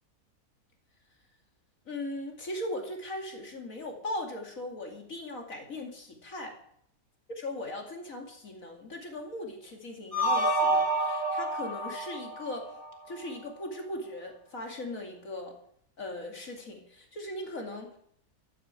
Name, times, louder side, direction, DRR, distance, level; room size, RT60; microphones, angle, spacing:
voice 1, 1.9-6.6 7.4-12.7 13.1-15.6 16.0-18.0, left 1 dB, 60° left, 2 dB, 2.8 m, -39 dB
sound 1, 10.1-13.2, right 1 dB, 60° right, 5.4 m, -28 dB
13.5 x 9.3 x 8.2 m, 0.67 s
omnidirectional pair, 1.6 m